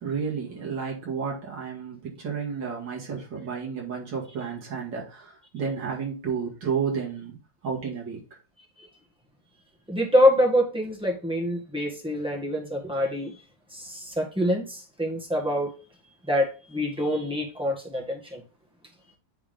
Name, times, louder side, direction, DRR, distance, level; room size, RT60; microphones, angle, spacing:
voice 1, 0.0-7.4 7.6-8.2, right 6 dB, 65° right, 2.8 m, -31 dB
voice 2, 9.9-13.3 13.7-15.8 16.3-18.4, equal, 5° right, 1.4 m, -25 dB
9.5 x 3.7 x 3.6 m
omnidirectional pair, 2.1 m